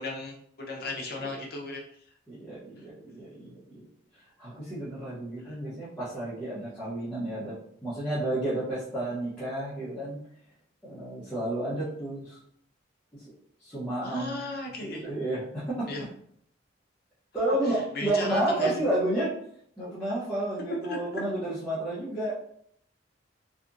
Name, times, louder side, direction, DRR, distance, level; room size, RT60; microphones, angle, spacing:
voice 1, 0.0-1.8 5.5-5.6 14.0-15.0 15.9-16.0 17.5-18.8 20.8-21.2, left 2 dB, 50° left, -1 dB, 0.6 m, -35 dB
voice 2, 2.3-3.8 4.4-7.5 7.8-10.2 10.8-12.4 13.1-13.2 13.6-14.4 14.8-15.9 17.3-17.7 18.0-19.3 19.8-22.5, right 1 dB, 5° left, -12 dB, 0.8 m, -31 dB
2.8 x 2.4 x 2.5 m, 0.66 s
head